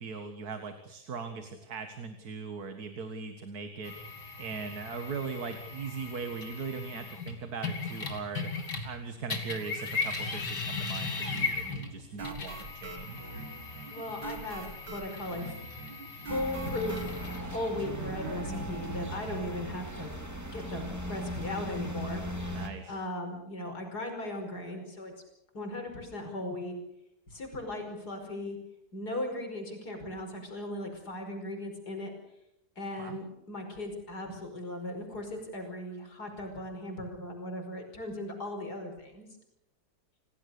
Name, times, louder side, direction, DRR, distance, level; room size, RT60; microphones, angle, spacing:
voice 1, 0.0-3.9 4.4-8.5 8.8-13.3 22.5-23.0 33.0-33.2, right 5 dB, 65° right, 7 dB, 2.2 m, -39 dB
sound 1, 3.8-9.0 9.3-17.4, left 4 dB, 85° left, 3.5 m, -38 dB
sound 2, 11.3-19.6, right 4 dB, 85° right, 2.8 m, -43 dB
voice 2, 13.9-15.6 16.3-20.1 20.5-22.2 22.9-25.1 25.5-26.7 27.3-28.6 28.9-32.1 32.8-39.3, left 1 dB, 70° left, 4 dB, 5.9 m, -37 dB
sound 3, 16.3-22.7, equal, 10° right, 2.9 m, -38 dB
28.5 x 18.0 x 6.8 m, 0.83 s
omnidirectional pair, 1.8 m